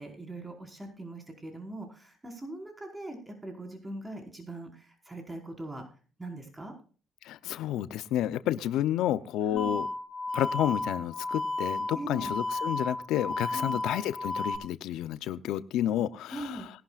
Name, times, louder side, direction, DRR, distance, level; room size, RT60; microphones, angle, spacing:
voice 1, 0.0-5.9 6.2-6.7 9.5-9.7 11.9-12.3 13.5-13.8 16.3-16.7, right 1 dB, 15° right, 3 dB, 4.8 m, -41 dB
voice 2, 7.2-9.9 10.3-16.7, left 12 dB, 90° left, 14 dB, 0.6 m, -30 dB
sound 1, 9.6-14.6, left 2 dB, 50° left, 3.8 m, -33 dB
20.5 x 11.5 x 2.4 m, 0.38 s
cardioid pair, 90°, 0 cm